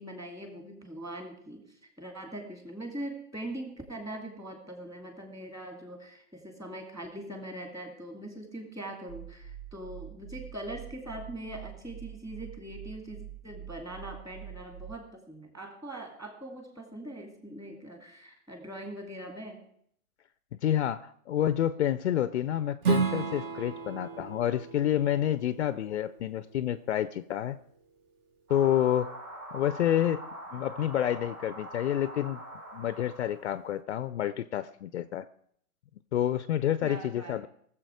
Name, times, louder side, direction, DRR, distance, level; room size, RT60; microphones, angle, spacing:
voice 1, 0.0-19.6 36.8-37.5, right 1 dB, 10° right, 3 dB, 2.2 m, -42 dB
sound 1, 9.1-15.0, right 9 dB, 55° right, 1.2 m, -45 dB
voice 2, 20.6-27.6 28.5-29.1 29.5-30.2 30.5-32.4 32.7-35.3 36.1-37.5, left 11 dB, 50° left, 14 dB, 0.6 m, -28 dB
Strum, 22.8-28.0, right 5 dB, 40° right, 1.9 m, -34 dB
sound 2, 28.5-33.5, right 1 dB, 85° right, 4.6 m, -43 dB
19.0 x 7.5 x 4.8 m, 0.65 s
hypercardioid pair, 135°, 44 cm